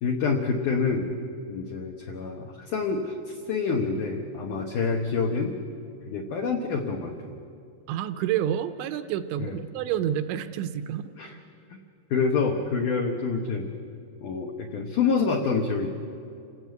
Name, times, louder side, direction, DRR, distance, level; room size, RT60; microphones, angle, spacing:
voice 1, 0.0-1.2 1.5-5.6 6.1-7.4 9.4-9.5 11.2-11.4 11.7-11.8 12.1-13.7 14.2-15.9, left 5 dB, 80° left, 3 dB, 1.8 m, -27 dB
voice 2, 7.9-11.0, right 10 dB, 80° right, 10 dB, 2.8 m, -28 dB
28.0 x 17.0 x 8.2 m, 2.6 s
omnidirectional pair, 5.5 m